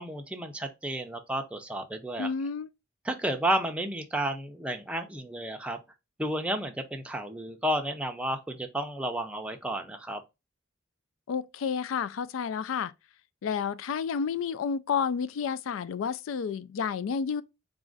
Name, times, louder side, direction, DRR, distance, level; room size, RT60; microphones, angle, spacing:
voice 1, 0.0-2.3 3.0-5.8 6.2-10.2, right 1 dB, 5° right, 0.5 m, -32 dB
voice 2, 2.2-2.7 11.3-12.9 13.4-17.4, left 6 dB, 75° left, 0.3 m, -30 dB
4.1 x 2.4 x 3.8 m
head